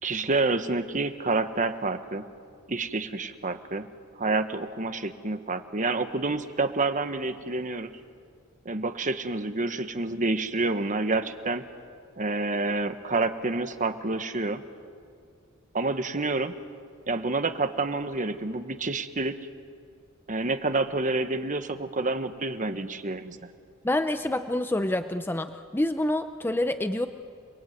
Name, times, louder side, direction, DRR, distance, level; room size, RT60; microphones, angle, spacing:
voice 1, 0.0-2.2 2.7-3.9 4.2-7.9 8.6-11.6 12.2-14.6 15.7-16.6 17.1-19.4 20.3-23.4, right 3 dB, 40° right, 9 dB, 1.4 m, -28 dB
voice 2, 23.8-27.1, left 1 dB, 10° left, 9 dB, 0.7 m, -27 dB
29.0 x 21.0 x 9.4 m, 2.3 s
head